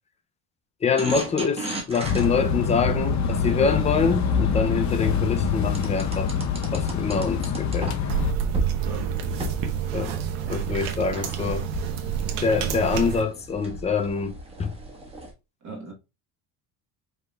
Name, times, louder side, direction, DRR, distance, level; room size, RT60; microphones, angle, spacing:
voice 1, 0.8-6.3 6.7-8.0 9.9-10.2 10.5-11.7 12.4-14.7, left 5 dB, 15° left, 0.4 m, -25 dB
sound 1, 1.0-4.9 5.7-8.2 8.5-8.7 9.2-15.3, right 1 dB, 10° right, 1.3 m, -36 dB
sound 2, 2.0-8.3, left 6 dB, 35° left, 0.7 m, -25 dB
sound 3, 8.1-13.2, right 8 dB, 85° right, 1.1 m, -28 dB
voice 2, 8.8-9.4 11.1-11.2 15.6-15.9, right 3 dB, 35° right, 1.2 m, -40 dB
5.3 x 4.1 x 2.3 m
cardioid pair, 145°, 48 cm